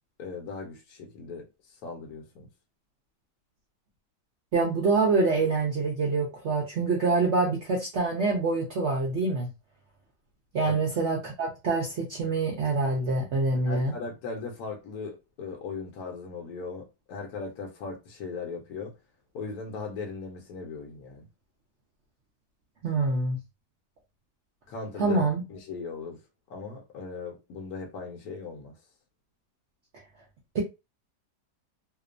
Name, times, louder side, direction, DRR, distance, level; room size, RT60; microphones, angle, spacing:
voice 1, 0.2-2.5 10.6-10.8 13.6-18.9 19.3-21.3 24.7-25.2 25.5-26.2 26.5-28.7, left 4 dB, 70° left, 1.0 m, -38 dB
voice 2, 4.5-9.5 10.5-13.9 22.8-23.4 25.0-25.4 30.5-30.6, right 3 dB, 65° right, 0.7 m, -26 dB
2.8 x 2.0 x 2.4 m
omnidirectional pair, 1.8 m